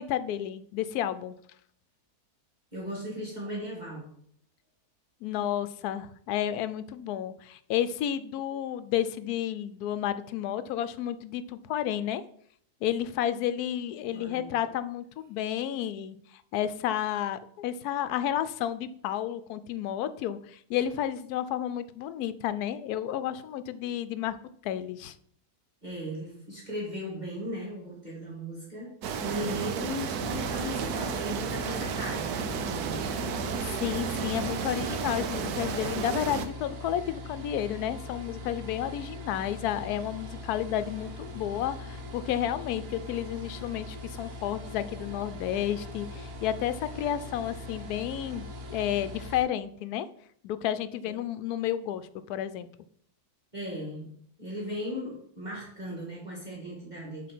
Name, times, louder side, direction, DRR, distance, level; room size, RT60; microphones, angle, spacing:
voice 1, 0.0-1.4 5.2-12.2 12.8-24.4 24.6-25.1 33.6-50.1 50.4-52.7, left 11 dB, 80° left, 13 dB, 1.1 m, -31 dB
voice 2, 2.7-4.1 14.1-14.5 25.8-28.9 29.2-33.1 53.5-54.1 54.4-57.3, equal, 30° right, -5 dB, 1.9 m, -37 dB
sound 1, 29.0-36.5, right 6 dB, 80° right, 1.2 m, -32 dB
sound 2, 30.1-49.4, left 2 dB, 60° right, 1.6 m, -41 dB
7.4 x 3.5 x 6.0 m, 0.65 s
omnidirectional pair, 1.6 m